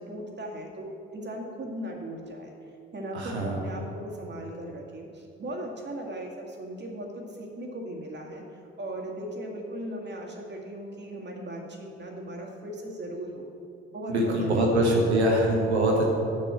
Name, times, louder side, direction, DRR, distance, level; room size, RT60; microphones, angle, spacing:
voice 1, 0.0-2.5 2.9-13.5 13.9-14.9, right 1 dB, 35° right, 0 dB, 2.1 m, -38 dB
voice 2, 3.1-3.6 14.1-16.1, right 1 dB, 85° right, -1 dB, 1.4 m, -23 dB
7.7 x 6.0 x 7.5 m, 2.7 s
figure-of-eight pair, 50°, 32 cm